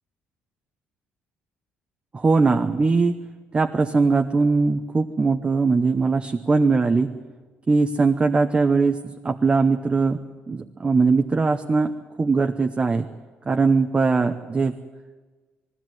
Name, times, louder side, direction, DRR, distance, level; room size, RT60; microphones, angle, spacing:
voice 1, 2.1-3.2 3.5-7.1 7.7-10.2 10.5-11.9 12.2-13.1 13.5-14.8, right 4 dB, 25° right, 5 dB, 0.9 m, -20 dB
19.5 x 15.5 x 9.3 m, 1.3 s
cardioid pair, 100°, 4 cm